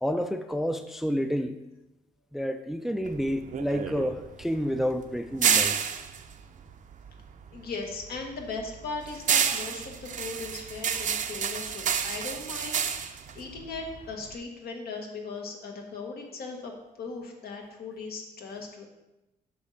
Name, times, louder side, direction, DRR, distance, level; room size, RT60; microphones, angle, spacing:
voice 1, 0.0-1.6 2.3-5.8, equal, ahead, 8 dB, 0.3 m, -29 dB
sound 1, 3.0-7.6 7.9-14.3, right 7 dB, 50° right, 0.5 m, -29 dB
voice 2, 7.5-12.7 13.0-16.7 17.0-18.9, left 4 dB, 75° left, 2 dB, 1.5 m, -38 dB
8.4 x 6.1 x 4.0 m, 0.95 s
wide cardioid pair, 155°, 16 cm